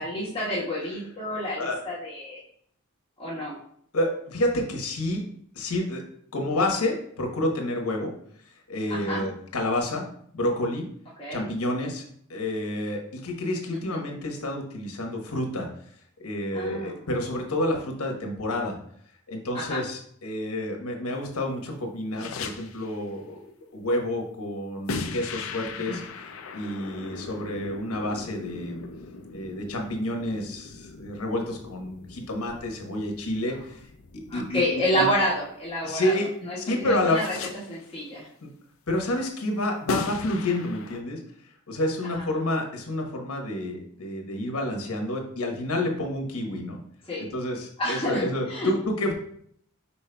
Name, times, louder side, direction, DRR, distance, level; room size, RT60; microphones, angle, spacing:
voice 1, 0.0-2.4 3.2-3.5 8.9-9.2 11.2-11.5 13.7-14.0 16.5-16.9 19.5-19.8 25.9-26.0 34.3-36.1 36.5-37.4 37.7-38.3 47.1-47.2 47.8-48.7, equal, 25° left, -7 dB, 1.3 m, -29 dB
voice 2, 3.9-5.3 5.5-6.0 6.3-8.1 8.7-10.9 11.3-12.0 12.3-15.7 16.2-18.8 19.3-26.3 26.5-28.9 29.3-33.9 34.3-34.6 35.0-35.1 35.8-36.3 36.6-37.2 38.4-38.5 38.9-41.2 41.7-46.8 47.3-49.1, left 1 dB, 85° left, 2 dB, 1.0 m, -29 dB
sound 1, 22.1-23.0 24.9-35.8 37.1-37.9 39.9-41.0, left 4 dB, 70° left, 0.4 m, -38 dB
5.4 x 4.3 x 2.2 m, 0.64 s
head